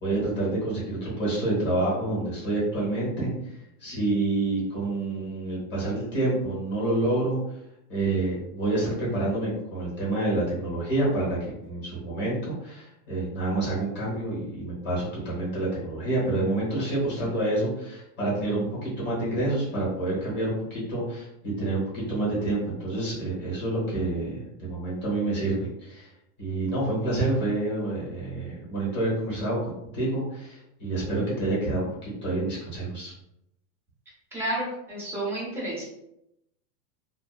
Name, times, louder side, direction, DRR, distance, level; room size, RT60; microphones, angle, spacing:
voice 1, 0.0-3.3 3.8-7.4 7.9-26.1 26.4-29.6 29.9-33.1, right 2 dB, 20° left, -6 dB, 1.1 m, -28 dB
voice 2, 34.3-35.8, right 1 dB, 5° right, -7 dB, 0.5 m, -31 dB
2.8 x 2.1 x 2.2 m, 0.83 s
supercardioid pair, 145°, 50 cm